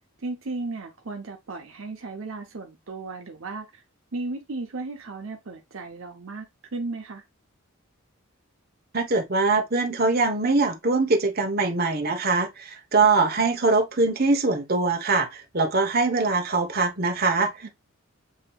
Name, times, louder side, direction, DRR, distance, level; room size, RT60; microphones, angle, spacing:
voice 1, 0.2-3.8 4.1-7.2 17.6-17.7, right 3 dB, 70° right, 0.8 m, -35 dB
voice 2, 8.9-17.7, right 3 dB, 45° right, 1.1 m, -23 dB
7.3 x 2.9 x 2.4 m
head